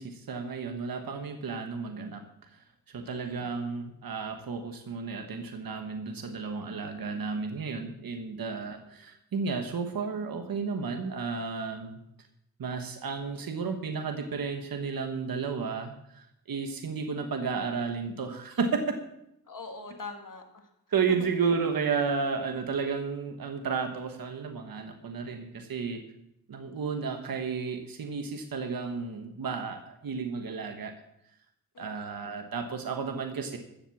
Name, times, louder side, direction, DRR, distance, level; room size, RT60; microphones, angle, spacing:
voice 1, 0.0-2.2 2.9-12.0 12.6-18.8 20.9-26.0 26.5-30.9 31.8-33.6, right 5 dB, 70° right, 5 dB, 1.3 m, -32 dB
voice 2, 3.0-3.5 19.5-20.6 31.7-32.2, left 3 dB, 60° left, 4 dB, 2.2 m, -43 dB
13.5 x 7.6 x 7.1 m, 0.81 s
wide cardioid pair, 80°, 36 cm